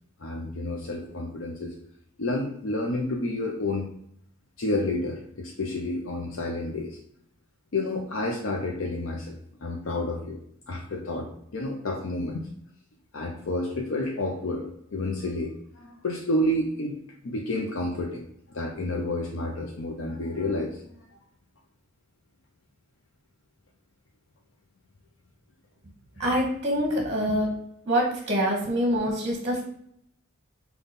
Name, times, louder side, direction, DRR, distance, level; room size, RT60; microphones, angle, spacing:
voice 1, 0.2-1.7 2.2-3.9 4.6-7.0 7.7-10.4 10.7-12.5 13.1-17.0 17.2-18.3 18.5-20.9, left 1 dB, 75° left, 1 dB, 0.5 m, -30 dB
voice 2, 26.2-27.5 27.8-29.6, equal, 30° right, 1 dB, 0.8 m, -25 dB
5.2 x 2.3 x 4.0 m, 0.69 s
head